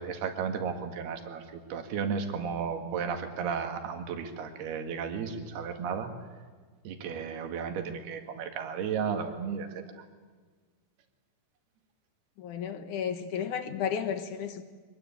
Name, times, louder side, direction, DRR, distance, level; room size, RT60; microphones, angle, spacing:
voice 1, 0.0-6.1 6.9-10.0, right 6 dB, 65° right, 3.9 m, -34 dB
voice 2, 12.4-14.6, left 8 dB, 65° left, 2.0 m, -33 dB
24.5 x 20.5 x 9.1 m
omnidirectional pair, 5.0 m